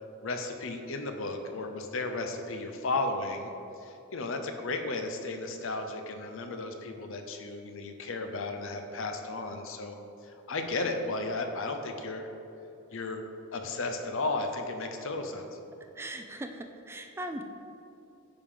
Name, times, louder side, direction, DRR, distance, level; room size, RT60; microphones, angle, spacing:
voice 1, 0.2-3.5 3.8-10.0 10.2-12.3 12.9-13.2 13.5-15.6, left 2 dB, 65° left, 6 dB, 0.7 m, -34 dB
voice 2, 16.0-17.4, right 1 dB, 10° right, 5 dB, 0.3 m, -39 dB
9.8 x 3.7 x 5.0 m, 2.9 s
head